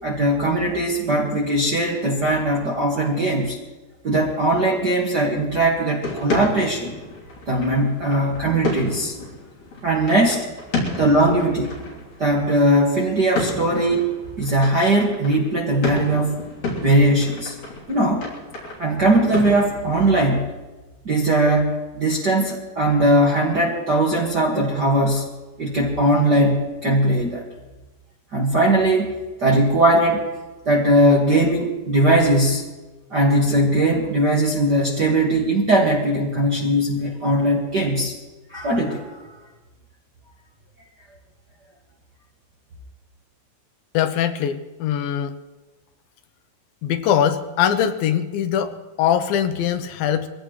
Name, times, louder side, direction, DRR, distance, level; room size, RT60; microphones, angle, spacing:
voice 1, 0.0-3.5 4.0-6.9 7.5-9.1 9.8-10.5 11.0-11.7 12.2-14.1 14.4-16.4 16.8-17.5 17.9-18.2 18.8-20.5 21.0-25.2 25.6-27.4 28.3-29.1 29.4-30.2 30.6-32.7 33.1-38.1 38.5-39.2, right 1 dB, 45° right, -3 dB, 1.5 m, -19 dB
sound 1, 6.0-20.3, left 2 dB, 65° left, 4.8 m, -32 dB
voice 2, 43.9-45.3 46.8-50.3, left 9 dB, 85° left, 9 dB, 2.6 m, -22 dB
23.0 x 16.5 x 3.1 m, 1.2 s
omnidirectional pair, 4.2 m